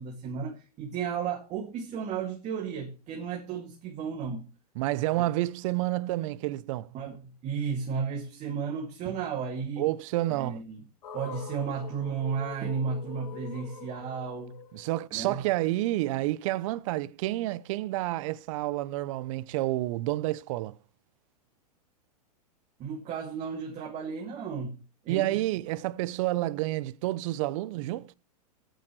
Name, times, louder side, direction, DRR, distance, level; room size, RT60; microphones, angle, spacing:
voice 1, 0.0-4.5 6.9-9.9 10.3-10.8 11.1-14.6 15.1-15.4 22.8-25.4, right 6 dB, 35° right, 2.4 m, -34 dB
voice 2, 4.8-6.9 9.8-10.6 14.7-20.7 25.1-28.1, right 17 dB, 55° right, 0.7 m, -29 dB
sound 1, 11.0-15.3, left 8 dB, 80° left, 3.1 m, -44 dB
18.0 x 9.1 x 3.2 m
hypercardioid pair, 120°, 20 cm